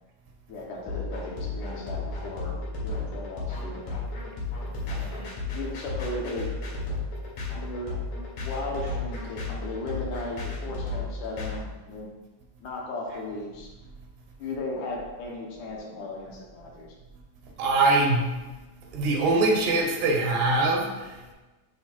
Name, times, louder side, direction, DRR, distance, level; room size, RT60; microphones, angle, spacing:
voice 1, 0.5-2.5 2.8-4.0 4.9-5.3 5.5-6.5 7.5-8.0 8.4-12.1 12.6-13.7 14.4-16.9, left 2 dB, 70° left, -2 dB, 2.2 m, -36 dB
sound 1, 0.9-11.6, left 3 dB, 85° left, 3.6 m, -33 dB
voice 2, 17.6-18.3 18.9-21.3, right 2 dB, 75° right, 0 dB, 2.7 m, -23 dB
8.6 x 3.4 x 4.5 m, 1.1 s
omnidirectional pair, 4.0 m